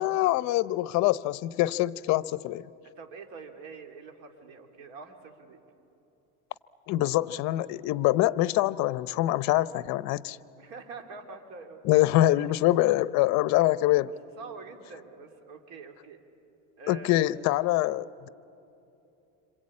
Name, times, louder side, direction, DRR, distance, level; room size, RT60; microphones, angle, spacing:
voice 1, 0.0-2.6 6.9-10.4 11.8-14.1 16.9-18.3, left 16 dB, 60° left, 17 dB, 0.7 m, -24 dB
voice 2, 3.0-5.6 10.6-12.0 14.4-16.2 16.8-17.3, right 4 dB, 70° right, 4 dB, 3.0 m, -45 dB
26.5 x 26.0 x 8.6 m, 2.9 s
cardioid pair, 140°, 31 cm